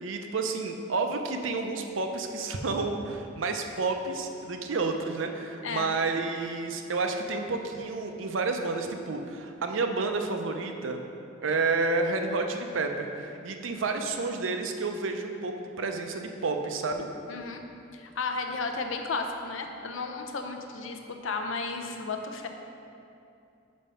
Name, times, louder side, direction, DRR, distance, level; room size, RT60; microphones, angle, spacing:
voice 1, 0.0-11.0 11.4-17.1, right 3 dB, 85° right, 5 dB, 0.6 m, -30 dB
voice 2, 5.6-5.9 17.3-17.6 17.9-22.5, left 4 dB, 85° left, 4 dB, 0.6 m, -33 dB
5.3 x 5.0 x 5.5 m, 2.6 s
head